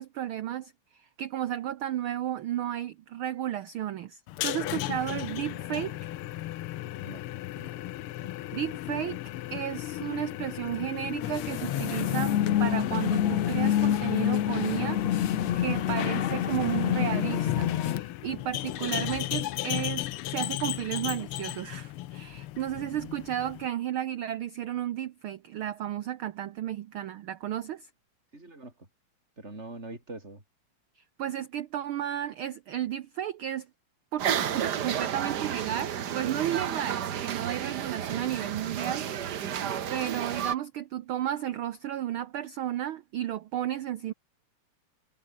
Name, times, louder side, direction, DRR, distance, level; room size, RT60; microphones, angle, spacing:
voice 1, 0.0-6.0 8.5-9.2 9.5-27.9 31.2-33.7 34.1-39.5 39.9-44.1, right 11 dB, 80° right, 1.2 m, -33 dB
sound 1, 4.3-23.7, left 15 dB, 85° left, 1.2 m, -36 dB
voice 2, 6.9-7.2 7.6-7.7 22.8-23.2 28.3-28.7 29.4-30.4, right 2 dB, 20° right, 6.4 m, -44 dB
sound 2, 11.2-18.0, left 11 dB, 65° left, 2.5 m, -27 dB
sound 3, 34.2-40.5, right 9 dB, 55° right, 1.1 m, -31 dB
omnidirectional pair, 3.3 m